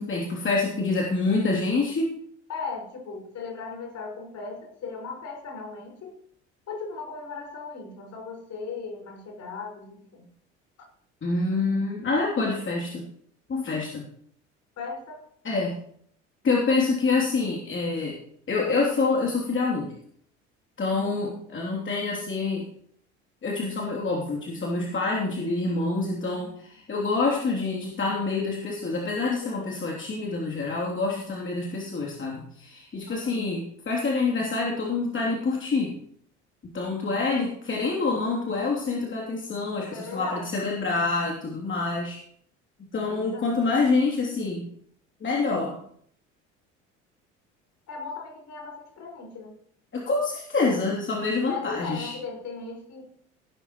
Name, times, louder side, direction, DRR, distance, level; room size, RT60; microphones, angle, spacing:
voice 1, 0.0-2.1 11.2-13.1 13.5-14.1 15.4-15.8 16.4-18.2 18.5-19.9 20.8-22.7 23.4-35.9 36.7-42.2 42.9-44.7 45.2-45.8 49.9-52.1, left 3 dB, 35° left, -2 dB, 3.2 m, -26 dB
voice 2, 2.5-6.1 6.7-10.3 14.8-15.3 21.0-21.4 29.4-29.8 33.1-33.5 39.9-40.6 43.1-43.6 47.9-49.6 51.5-53.1, left 4 dB, 50° left, 1 dB, 5.6 m, -37 dB
16.5 x 12.5 x 3.1 m, 0.65 s
hypercardioid pair, 65°, 35 cm